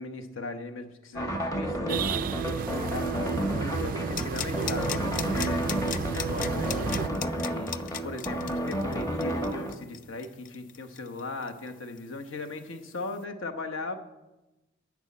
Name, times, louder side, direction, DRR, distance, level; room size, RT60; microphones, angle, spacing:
voice 1, 0.0-2.1 2.4-7.1 7.5-14.0, left 3 dB, 70° left, 6 dB, 1.0 m, -38 dB
sound 1, 1.2-9.8, right 1 dB, 15° left, 1.0 m, -31 dB
sound 2, 1.9-7.1, right 6 dB, 45° right, 0.3 m, -33 dB
sound 3, 4.2-11.7 12.0-12.1, left 10 dB, 40° left, 0.3 m, -36 dB
11.0 x 6.2 x 8.5 m, 1.0 s
head